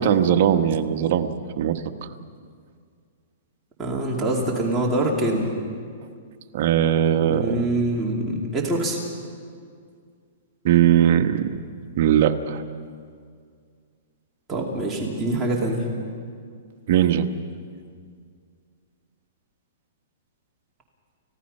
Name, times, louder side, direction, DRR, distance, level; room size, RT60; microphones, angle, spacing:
voice 1, 0.0-1.8 6.5-7.6 10.6-11.7 12.0-12.6 16.9-17.3, right 10 dB, 50° right, 6 dB, 1.2 m, -20 dB
voice 2, 3.8-5.5 7.2-9.0 14.5-15.8, right 1 dB, 10° right, -3 dB, 2.7 m, -24 dB
30.0 x 16.0 x 5.5 m, 2.1 s
hypercardioid pair, 155°, 0 cm